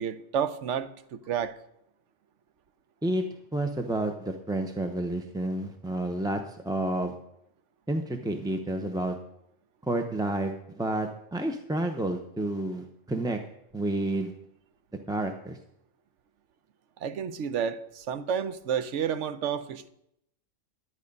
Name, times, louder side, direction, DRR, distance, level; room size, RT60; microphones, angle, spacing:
voice 1, 0.0-1.6 17.0-19.9, right 8 dB, 70° right, 1.0 m, -30 dB
voice 2, 3.5-7.1 7.9-9.1 9.8-13.4 13.7-14.3 15.1-15.6, right 1 dB, 5° right, 0.5 m, -30 dB
11.0 x 9.8 x 5.3 m
omnidirectional pair, 1.3 m